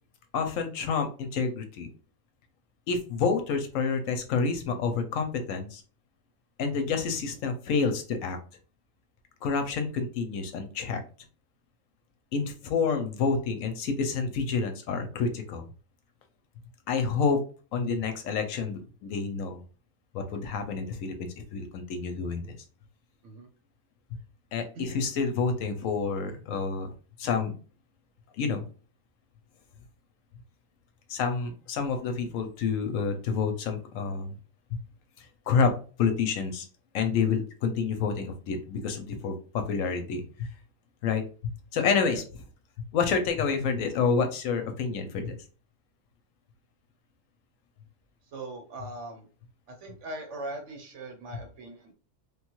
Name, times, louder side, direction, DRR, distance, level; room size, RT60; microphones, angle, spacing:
voice 1, 0.3-1.9 2.9-5.8 6.6-8.4 9.4-11.0 12.3-15.6 16.9-17.4 17.7-19.6 20.1-22.4 24.5-26.9 27.2-27.6 28.4-28.6 31.1-34.4 35.2-35.7 36.0-36.6 36.9-40.5 41.0-41.2 41.7-42.2 42.9-45.3, left 5 dB, 70° left, 6 dB, 0.9 m, -28 dB
voice 2, 48.3-49.3 49.7-51.9, right 2 dB, 60° right, 5 dB, 1.0 m, -40 dB
3.3 x 2.2 x 2.9 m, 0.38 s
omnidirectional pair, 1.5 m